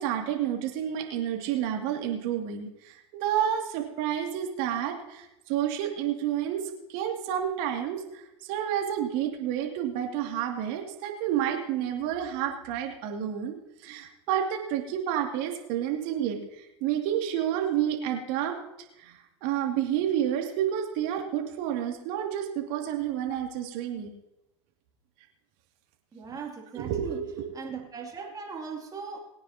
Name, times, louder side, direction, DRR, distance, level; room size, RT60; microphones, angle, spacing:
voice 1, 0.0-6.6 6.9-18.6 19.0-19.1 19.4-24.1 26.7-27.5, right 10 dB, 55° right, 2 dB, 2.5 m, -30 dB
voice 2, 26.1-27.2 27.5-29.2, right 5 dB, 25° right, 0 dB, 2.8 m, -38 dB
22.0 x 9.4 x 2.9 m, 0.90 s
hypercardioid pair, 90°, 16 cm